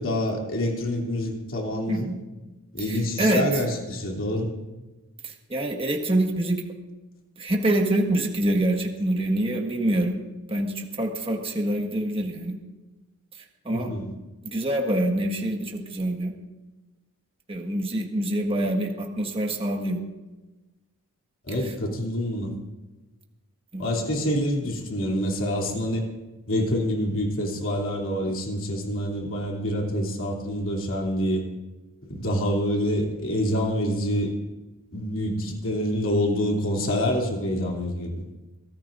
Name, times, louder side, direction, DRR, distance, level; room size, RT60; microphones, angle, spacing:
voice 1, 0.0-2.1 2.7-4.5 13.7-14.1 21.4-22.5 23.8-26.0 26.5-31.4 32.1-34.3 34.9-38.2, equal, 65° left, -1 dB, 2.9 m, -26 dB
voice 2, 1.9-2.2 2.9-3.5 5.2-6.6 7.4-10.1 10.5-12.6 13.4-13.9 14.4-16.3 17.5-20.0 23.7-23.9, right 1 dB, 25° right, 1 dB, 1.6 m, -25 dB
23.5 x 17.0 x 2.6 m, 1.1 s
head